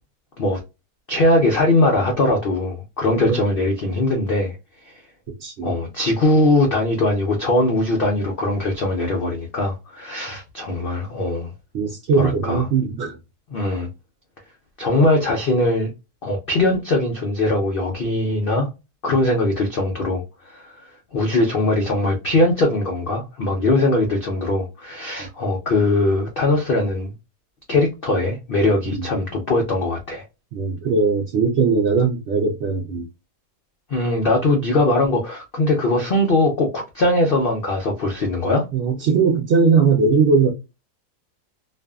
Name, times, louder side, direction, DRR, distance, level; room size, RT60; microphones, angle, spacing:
voice 1, 1.1-4.6 4.8-5.0 5.6-11.5 12.1-12.7 13.5-13.9 14.8-15.9 16.2-18.7 19.0-20.8 21.1-27.1 27.7-30.2 33.9-38.6, left 2 dB, 90° left, 0.5 m, -20 dB
voice 2, 5.4-5.7 11.7-13.1 28.9-29.1 30.5-33.1 38.7-40.5, right 5 dB, 65° right, 0.6 m, -19 dB
2.5 x 2.4 x 2.2 m
omnidirectional pair, 1.7 m